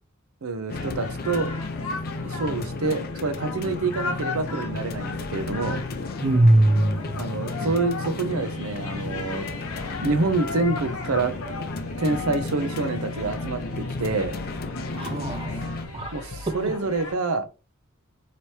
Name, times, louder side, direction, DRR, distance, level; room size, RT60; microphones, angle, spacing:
voice 1, 0.4-1.5 2.2-5.8 7.1-9.5 10.0-11.3 12.0-14.4 16.1-17.5, right 3 dB, 80° right, 0.6 m, -27 dB
sound 1, 0.7-17.1, left 3 dB, 85° left, 0.8 m, -37 dB
sound 2, 0.7-15.9, left 3 dB, 45° left, 0.5 m, -33 dB
voice 2, 6.2-7.1 15.0-15.7 15.9-16.1 16.6-16.9, right 1 dB, 25° right, 0.5 m, -21 dB
3.0 x 2.9 x 3.1 m
head